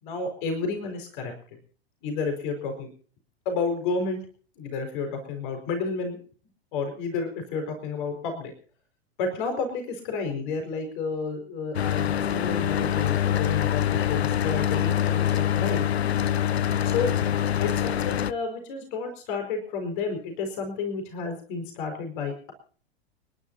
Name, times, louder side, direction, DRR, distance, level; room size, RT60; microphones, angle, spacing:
voice 1, 0.0-1.3 2.0-2.9 3.4-4.2 4.6-6.2 6.7-8.5 9.2-15.9 16.8-17.1 17.6-22.5, left 4 dB, 50° left, 5 dB, 5.1 m, -31 dB
Mechanical fan, 11.7-18.3, left 10 dB, 80° left, 0.7 m, -25 dB
30.0 x 11.5 x 2.8 m, 0.43 s
figure-of-eight pair, 95°, 32 cm